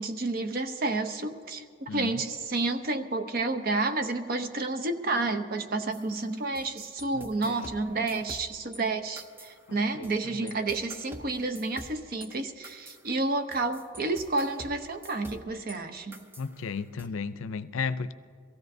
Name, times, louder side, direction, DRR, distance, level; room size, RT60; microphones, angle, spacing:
voice 1, 0.0-16.2, right 3 dB, 45° right, 0.7 m, -30 dB
voice 2, 1.9-2.2 7.1-8.0 9.7-10.6 16.4-18.1, left 5 dB, 90° left, 0.5 m, -35 dB
sound 1, 5.9-8.8 9.2-10.2 10.5-15.8 16.1-17.1, right 1 dB, 10° right, 0.5 m, -47 dB
22.5 x 16.0 x 2.7 m
head